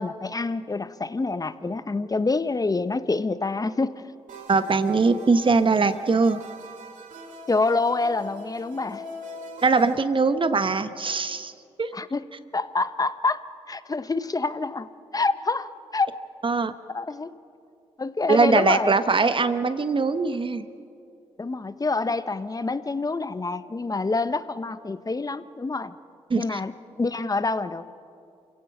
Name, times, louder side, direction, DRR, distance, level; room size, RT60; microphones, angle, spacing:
voice 1, 0.0-4.0 7.5-9.0 11.9-14.9 15.1-16.1 16.9-17.3 18.0-18.9 21.4-25.9 26.3-27.9, left 3 dB, 25° left, 13 dB, 1.0 m, -27 dB
sound 1, 4.3-9.9, left 1 dB, 70° right, 2.7 m, -41 dB
voice 2, 4.5-6.4 9.6-11.5 11.8-12.0 16.4-16.7 18.3-20.7 26.3-26.6, right 4 dB, 40° right, 11 dB, 1.1 m, -21 dB
28.0 x 16.5 x 6.0 m, 2.5 s
hypercardioid pair, 45°, 14 cm